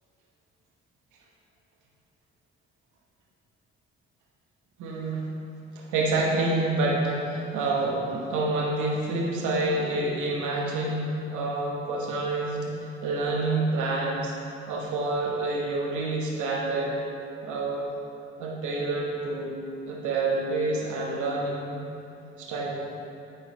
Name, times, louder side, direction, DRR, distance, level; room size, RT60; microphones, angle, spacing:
voice 1, 4.8-5.3 5.7-14.3 14.7-17.0 17.4-17.9 18.4-19.5 19.9-21.8 22.4-22.8, right 2 dB, 75° right, -2 dB, 1.0 m, -28 dB
9.2 x 4.1 x 5.0 m, 2.7 s
hypercardioid pair, 40°, 30 cm